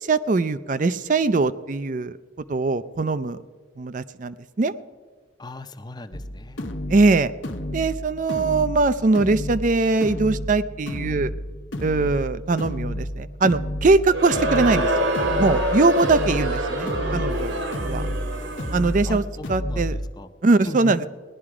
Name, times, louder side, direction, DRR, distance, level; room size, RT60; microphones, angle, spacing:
voice 1, 0.0-2.2 2.5-3.4 3.8-4.7 6.9-7.3 7.7-11.3 11.8-14.9 15.4-18.1 18.7-20.0 20.4-21.1, right 3 dB, 40° right, 14 dB, 0.4 m, -21 dB
voice 2, 5.4-6.6 19.1-19.9 20.2-20.3 20.7-20.9, left 2 dB, 20° left, 9 dB, 0.6 m, -37 dB
sound 1, 6.1-20.1, equal, 75° left, 1.0 m, -31 dB
Crowd, 14.0-19.1, right 1 dB, 75° right, 1.9 m, -26 dB
17.5 x 11.5 x 4.9 m, 1.5 s
head